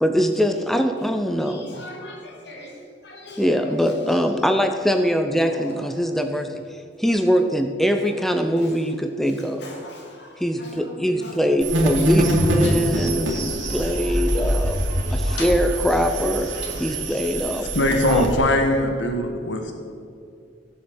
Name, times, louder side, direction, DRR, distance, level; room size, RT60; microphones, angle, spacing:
voice 1, 0.0-1.8 3.4-6.6 7.0-9.6 10.4-14.8 15.1-17.7 18.1-18.3, equal, ahead, 6 dB, 0.6 m, -22 dB
voice 2, 1.4-2.7 3.0-3.4 9.6-9.9 10.6-10.7 11.2-11.3 12.6-12.7 13.6-13.8 15.2-15.5 16.6-16.7, left 2 dB, 60° left, 0 dB, 2.7 m, -38 dB
sound 1, 11.6-18.4, right 1 dB, 85° right, 2.7 m, -24 dB
voice 3, 17.7-19.7, left 1 dB, 80° left, 4 dB, 1.5 m, -21 dB
15.5 x 7.2 x 8.0 m, 2.4 s
head